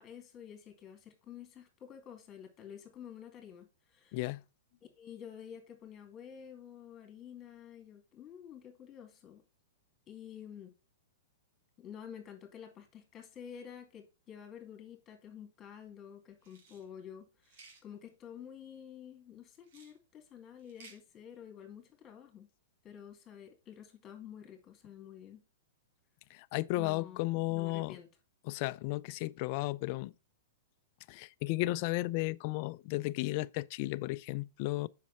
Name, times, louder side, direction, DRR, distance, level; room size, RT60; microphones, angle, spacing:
voice 1, 0.0-4.2 4.9-9.4 10.1-10.7 11.8-22.5 22.8-25.4 26.8-28.1, left 9 dB, 25° left, 2.5 m, -50 dB
voice 2, 4.1-4.4 26.3-28.0 28.4-30.1 31.1-34.9, left 19 dB, 45° left, 0.4 m, -34 dB
sound 1, 16.4-16.8 17.4-17.8 19.6-19.9 20.6-21.0, right 4 dB, 60° right, 2.3 m, -57 dB
7.4 x 5.8 x 4.1 m
hypercardioid pair, 140°, 0 cm